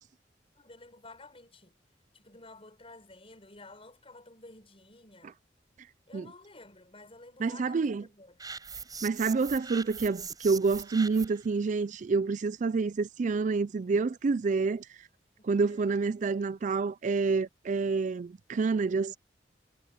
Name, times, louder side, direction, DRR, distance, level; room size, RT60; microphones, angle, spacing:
voice 1, 0.6-1.7 2.1-5.4 6.1-8.4 15.4-15.9, left 2 dB, 35° left, 6.7 m, -52 dB
voice 2, 7.4-8.0 9.0-15.0 15.4-19.2, right 4 dB, 45° right, 0.4 m, -28 dB
sound 1, 8.4-11.5, right 5 dB, 25° right, 5.7 m, -41 dB
head